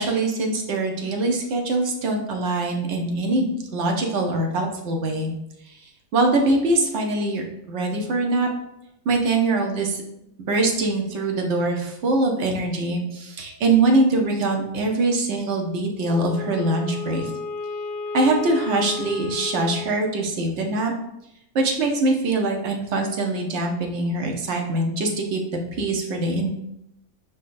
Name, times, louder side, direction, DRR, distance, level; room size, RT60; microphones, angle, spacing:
voice 1, 0.0-5.3 6.1-8.5 9.0-10.0 10.5-17.3 18.1-20.9 21.5-25.4 25.7-26.5, right 2 dB, 65° right, 2 dB, 1.1 m, -23 dB
Wind instrument woodwind instrument, 16.0-20.5, left 3 dB, 45° left, 1.5 m, -33 dB
5.3 x 3.8 x 2.5 m, 0.82 s
omnidirectional pair, 1.3 m